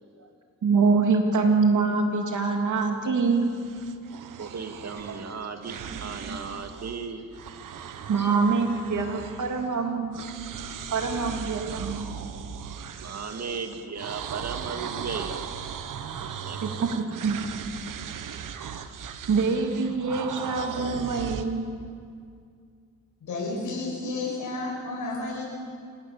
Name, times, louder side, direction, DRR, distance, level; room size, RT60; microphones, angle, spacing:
voice 1, 0.6-3.5 8.1-10.3 10.9-12.2 16.6-17.4 19.3-21.6, right 4 dB, 70° right, 3 dB, 3.2 m, -24 dB
sound 1, 3.3-7.1 7.3-9.9 10.1-21.5, right 8 dB, 90° right, 1.2 m, -38 dB
voice 2, 4.4-7.3 7.7-8.5 11.6-11.7 13.0-15.9 16.2-16.8, right 5 dB, 55° right, 5 dB, 2.3 m, -36 dB
voice 3, 23.2-25.4, left 3 dB, 85° left, -3 dB, 6.0 m, -31 dB
26.0 x 17.5 x 7.2 m, 2.2 s
cardioid pair, 80°, 31 cm